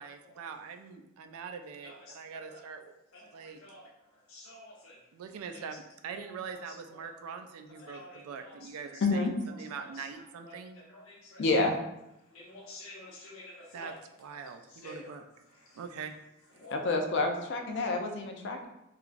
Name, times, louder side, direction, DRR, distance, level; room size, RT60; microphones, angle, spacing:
voice 1, 0.0-2.9 3.3-3.6 5.1-10.8 13.7-15.2 15.7-16.2, right 6 dB, 85° right, 7 dB, 0.3 m, -43 dB
voice 2, 4.3-4.9 5.5-5.6 7.8-8.2 10.9-11.4 12.3-13.9 14.8-15.0 16.6-16.8, left 1 dB, 80° left, -2 dB, 0.8 m, -48 dB
voice 3, 9.0-9.3 11.4-11.8 16.7-18.7, left 3 dB, 55° left, 4 dB, 0.4 m, -28 dB
2.9 x 2.3 x 2.4 m, 0.88 s
head